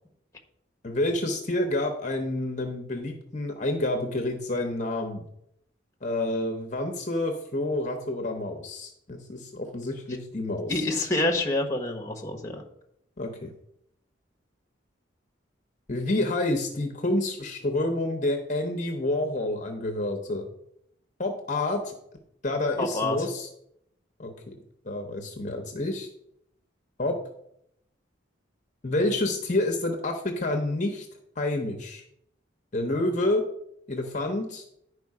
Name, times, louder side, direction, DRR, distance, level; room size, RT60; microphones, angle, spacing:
voice 1, 0.8-5.2 6.0-10.9 13.2-13.5 15.9-20.5 21.2-21.9 22.4-23.5 24.2-24.5 24.8-26.1 27.0-27.2 28.8-31.1 31.4-32.0 32.7-33.4 33.9-34.6, left 2 dB, 40° left, 4 dB, 0.9 m, -28 dB
voice 2, 10.7-12.6 22.8-23.3, left 2 dB, 15° left, 3 dB, 1.2 m, -27 dB
10.5 x 4.9 x 4.8 m, 0.75 s
head